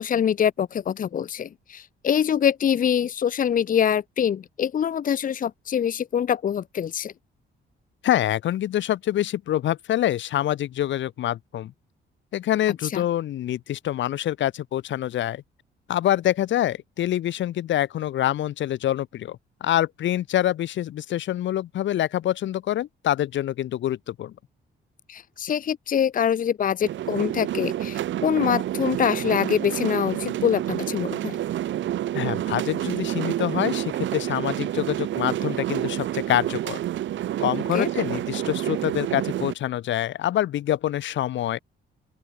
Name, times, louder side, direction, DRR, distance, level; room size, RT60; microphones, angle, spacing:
voice 1, 0.0-7.1 12.8-13.0 25.1-31.4 37.7-37.9, left 8 dB, 45° left, 1.4 m, -24 dB
voice 2, 8.0-11.7 12.3-15.4 15.9-24.3 32.1-36.8 37.4-41.6, left 12 dB, 75° left, 2.5 m, -26 dB
sound 1, 26.8-39.5, right 12 dB, 75° right, 2.3 m, -28 dB
open air
cardioid pair, 160°, 20 cm